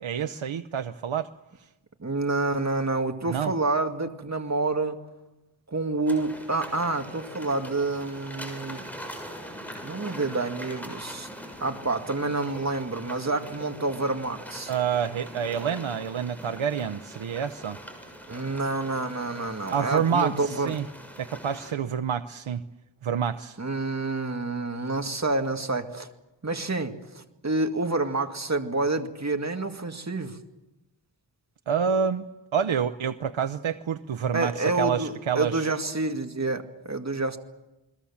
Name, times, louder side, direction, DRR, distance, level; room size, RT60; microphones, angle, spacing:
voice 1, 0.0-1.3 3.2-3.5 14.7-17.8 19.7-20.9 21.2-22.6 23.0-23.6 31.7-32.2 32.5-35.7, right 7 dB, 90° right, 9 dB, 0.8 m, -28 dB
voice 2, 2.0-5.0 5.7-8.8 9.8-11.3 11.6-14.7 18.3-20.8 23.6-26.1 26.4-30.4 34.3-37.4, right 3 dB, 35° right, 5 dB, 2.1 m, -28 dB
sound 1, 6.1-21.7, equal, 5° left, 6.7 m, -42 dB
28.5 x 21.5 x 7.2 m, 1.0 s
wide cardioid pair, 65°, 46 cm